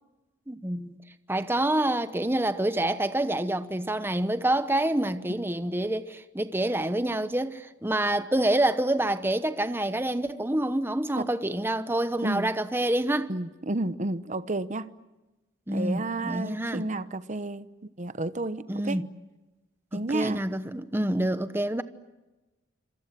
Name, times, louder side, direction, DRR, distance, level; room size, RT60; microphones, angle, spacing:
voice 1, 0.5-1.0 1.3-13.3 15.7-16.8 18.7-19.1 19.9-21.8, right 1 dB, 10° right, 1.0 m, -27 dB
voice 2, 13.3-14.9 15.7-17.7 18.0-19.0 19.9-20.4, right 2 dB, 40° right, 0.9 m, -31 dB
27.0 x 27.0 x 7.6 m
head